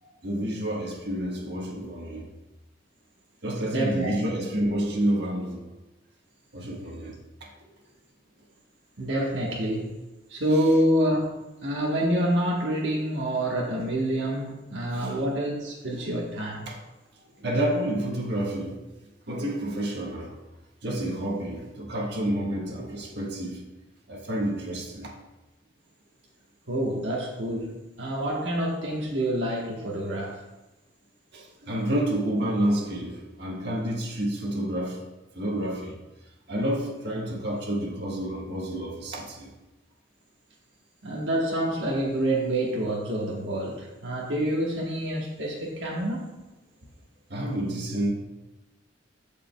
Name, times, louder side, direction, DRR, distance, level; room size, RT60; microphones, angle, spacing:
voice 1, 0.0-2.4 3.4-5.7 6.5-7.7 14.9-15.2 16.7-16.8 17.1-18.9 19.3-20.4 20.8-23.6 24.1-25.2 31.3-35.1 35.3-39.5 45.7-45.8 47.3-48.1, right 1 dB, 60° right, 1.4 m, -29 dB
voice 2, 3.6-4.3 9.0-10.0 10.3-11.4 11.6-16.7 26.7-30.4 41.0-46.3, right 1 dB, 75° right, 1.3 m, -27 dB
14.5 x 5.1 x 2.3 m
head